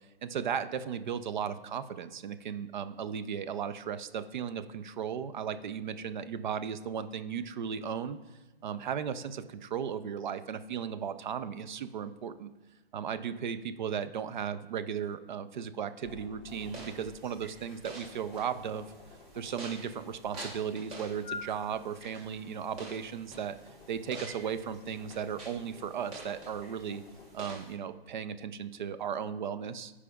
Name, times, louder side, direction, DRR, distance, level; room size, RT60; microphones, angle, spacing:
voice 1, 0.2-8.2 8.6-12.5 12.9-18.9 19.3-23.6 23.9-27.0 27.3-29.9, right 7 dB, 50° right, 12 dB, 0.5 m, -36 dB
sound 1, 16.0-27.3, left 4 dB, 15° left, 0.8 m, -51 dB
sound 2, 16.5-27.7, right 2 dB, 20° right, 1.1 m, -48 dB
14.5 x 4.9 x 2.3 m, 1.1 s
hypercardioid pair, 145°, 30 cm